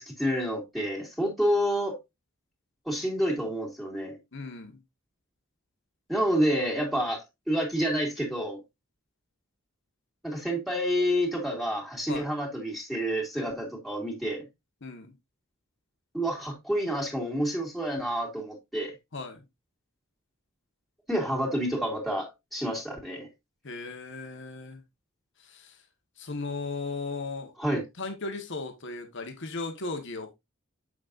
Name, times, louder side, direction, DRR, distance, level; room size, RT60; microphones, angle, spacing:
voice 1, 0.0-2.0 2.9-4.2 6.1-8.6 10.2-14.4 16.1-18.9 21.1-23.3 27.6-27.8, equal, ahead, 2.5 m, -29 dB
voice 2, 4.3-4.8 12.1-12.3 14.8-15.1 19.1-19.4 23.6-24.8 25.4-25.7 26.2-27.5 28.0-30.3, left 3 dB, 60° left, 1.5 m, -36 dB
7.6 x 6.4 x 2.6 m
head